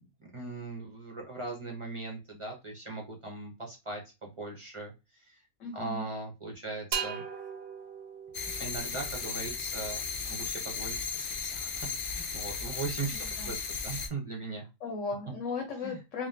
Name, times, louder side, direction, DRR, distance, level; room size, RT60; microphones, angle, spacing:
voice 1, 0.2-5.4 5.7-7.2 8.6-10.0 10.3-14.7 15.8-16.0, right 3 dB, 35° right, -1 dB, 0.6 m, -39 dB
voice 2, 5.6-6.0 13.1-13.5 14.8-16.3, left 4 dB, 80° left, 3 dB, 1.1 m, -36 dB
sound 1, 6.9-10.5, right 7 dB, 85° right, 1.0 m, -40 dB
sound 2, 8.3-14.1, left 5 dB, 55° left, 0.6 m, -36 dB
3.5 x 2.1 x 2.6 m, 0.26 s
omnidirectional pair, 1.3 m